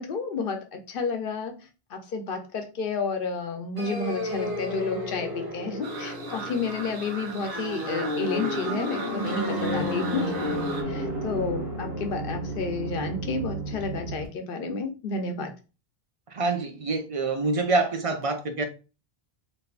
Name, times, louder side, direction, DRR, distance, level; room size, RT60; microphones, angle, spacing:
voice 1, 0.0-1.5 1.9-10.3 10.9-15.5, left 4 dB, 60° left, 0.8 m, -31 dB
sound 1, 3.8-14.3, equal, 20° right, 1.4 m, -32 dB
sound 2, 5.8-10.8, right 4 dB, 70° right, 0.9 m, -39 dB
voice 2, 16.3-18.6, right 3 dB, 50° right, 0.4 m, -26 dB
3.5 x 2.6 x 2.3 m
omnidirectional pair, 1.1 m